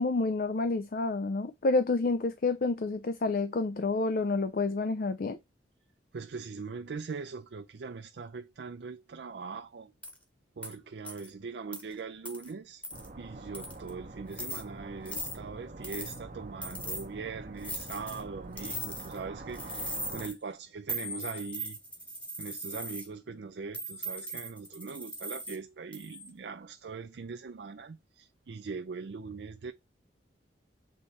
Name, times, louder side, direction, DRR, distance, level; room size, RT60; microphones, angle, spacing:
voice 1, 0.0-5.4, left 3 dB, 50° left, 0.5 m, -29 dB
voice 2, 6.1-9.9 10.6-12.9 13.2-21.8 22.4-29.7, right 4 dB, 65° right, 0.4 m, -41 dB
sound 1, 10.0-10.2 10.6-10.7 11.0-11.3 11.7-11.8 12.3-12.5 12.8-13.1 13.5-13.9 14.3-14.6 15.1-15.4 15.8-16.2 16.6-17.0 17.6-18.2 18.6-19.2 19.5-20.3 20.9-23.1 23.7-25.6 25.9-26.3, right 1 dB, 5° left, 1.1 m, -39 dB
sound 2, 12.9-20.3, right 2 dB, 40° right, 0.8 m, -45 dB
7.3 x 3.2 x 4.1 m
head